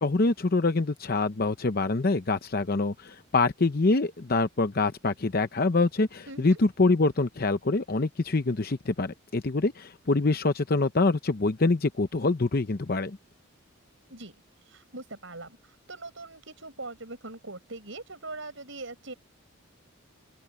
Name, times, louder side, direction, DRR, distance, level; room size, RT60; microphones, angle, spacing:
voice 1, 0.0-13.2, left 3 dB, 45° left, 0.7 m, -25 dB
voice 2, 6.3-6.6 14.1-14.3 14.7-19.1, right 2 dB, 65° right, 7.2 m, -41 dB
open air
head